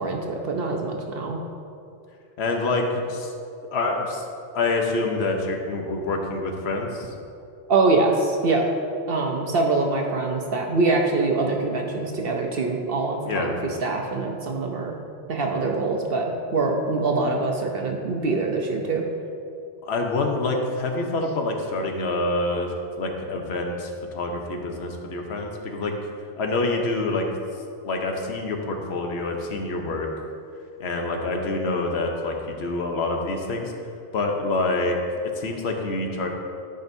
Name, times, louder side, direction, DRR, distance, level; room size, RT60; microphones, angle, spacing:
voice 1, 0.0-1.4 7.7-8.6 9.1-14.9 15.3-19.0, right 3 dB, 60° right, 1 dB, 0.9 m, -24 dB
voice 2, 2.4-3.3 3.7-4.2 4.5-7.1 13.3-13.5 19.8-25.9 26.4-27.3 27.8-30.1 30.8-33.7 34.1-35.0 35.4-36.3, left 2 dB, 65° left, 2 dB, 1.1 m, -26 dB
13.5 x 5.3 x 2.7 m, 2.5 s
omnidirectional pair, 1.2 m